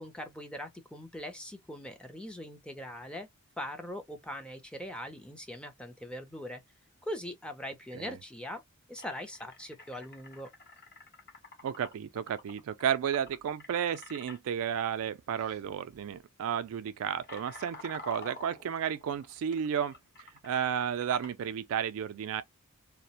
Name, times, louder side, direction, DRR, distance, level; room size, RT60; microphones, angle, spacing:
voice 1, 0.0-3.3 3.6-6.6 7.0-8.6 8.9-10.5, equal, 5° left, 0.5 m, -41 dB
sound 1, 8.9-14.4 15.4-15.6 15.9-16.2 16.7-21.5, left 2 dB, 45° left, 0.8 m, -49 dB
voice 2, 11.6-22.4, right 8 dB, 70° right, 0.3 m, -33 dB
2.3 x 2.0 x 2.7 m
head